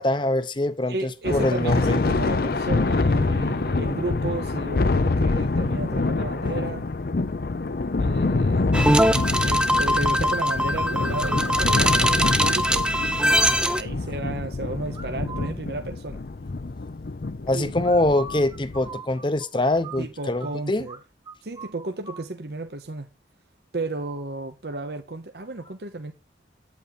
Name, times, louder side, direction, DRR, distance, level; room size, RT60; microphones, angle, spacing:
voice 1, 0.0-2.0 17.5-20.9, left 1 dB, 25° left, 0.8 m, -24 dB
voice 2, 0.9-6.9 8.0-8.7 9.4-16.2 17.5-17.7 20.0-21.0 21.4-23.1 23.7-26.1, right 2 dB, 60° right, 0.9 m, -33 dB
Thunder, 1.2-18.9, left 3 dB, 55° left, 0.6 m, -26 dB
sound 1, 8.7-13.8, equal, 5° right, 0.5 m, -21 dB
sound 2, 14.9-15.5 17.8-20.5 20.9-21.0 21.3-22.2, right 3 dB, 25° right, 1.0 m, -41 dB
8.9 x 8.4 x 4.1 m
head